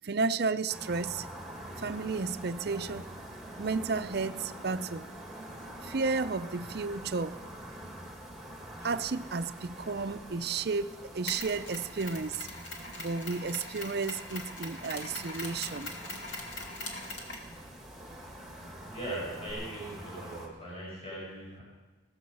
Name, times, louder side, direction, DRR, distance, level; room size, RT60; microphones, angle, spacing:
voice 1, 0.0-1.3 1.8-3.3 3.6-5.1 5.8-7.4 8.8-12.5 13.0-15.9, right 4 dB, 55° right, 12 dB, 0.5 m, -32 dB
sound 1, 0.7-20.5, right 1 dB, ahead, 2.1 m, -46 dB
Mechanisms, 11.3-19.5, left 2 dB, 70° left, 2.6 m, -43 dB
voice 2, 18.9-21.6, right 1 dB, 30° left, -6 dB, 6.2 m, -39 dB
17.0 x 14.5 x 5.5 m, 1.3 s
head